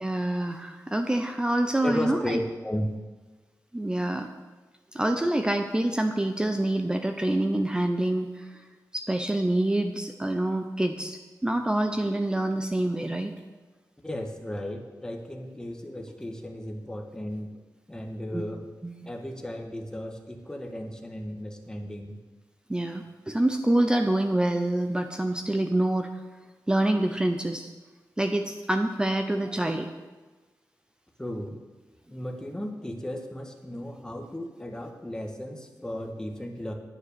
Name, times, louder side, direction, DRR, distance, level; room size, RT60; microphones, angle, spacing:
voice 1, 0.0-2.4 3.7-4.3 4.9-8.6 8.9-13.3 18.3-18.5 18.8-19.1 22.7-26.1 26.7-27.7 28.2-29.9, right 1 dB, 10° right, 6 dB, 0.6 m, -26 dB
voice 2, 1.8-2.9 14.0-17.5 17.9-18.6 19.0-22.2 31.2-31.6 32.1-36.7, left 1 dB, 10° left, 2 dB, 1.4 m, -35 dB
9.9 x 9.5 x 6.8 m, 1.3 s
wide cardioid pair, 140°, 7 cm